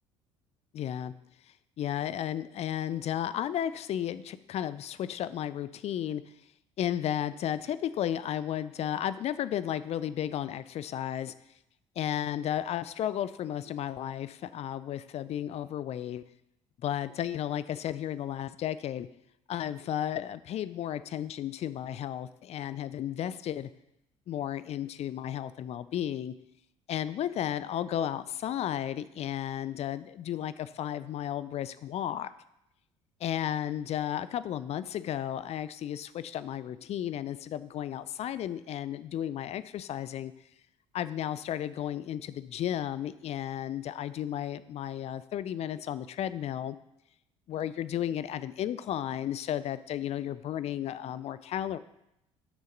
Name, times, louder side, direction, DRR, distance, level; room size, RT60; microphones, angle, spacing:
voice 1, 0.7-1.1 1.8-6.2 6.8-11.3 12.0-16.2 16.8-19.1 19.5-23.7 24.3-26.3 26.9-32.3 33.2-40.3 40.9-46.8 47.5-51.8, left 11 dB, 40° left, 15 dB, 0.5 m, -33 dB
9.3 x 6.4 x 3.9 m, 0.82 s
figure-of-eight pair, 60°, 17 cm